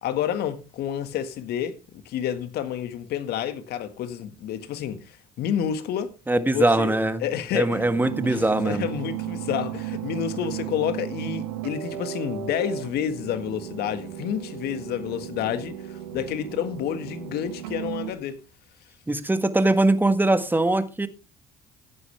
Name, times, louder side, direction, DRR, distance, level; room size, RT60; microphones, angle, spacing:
voice 1, 0.0-6.1 6.5-6.9 7.2-7.9 8.2-18.4, left 9 dB, 65° left, 1.8 m, -29 dB
voice 2, 6.3-7.2 7.5-8.9 19.1-21.1, right 2 dB, 10° right, 1.7 m, -22 dB
sound 1, 7.6-18.1, right 12 dB, 85° right, 1.0 m, -35 dB
15.5 x 9.8 x 3.4 m
hypercardioid pair, 65°, 18 cm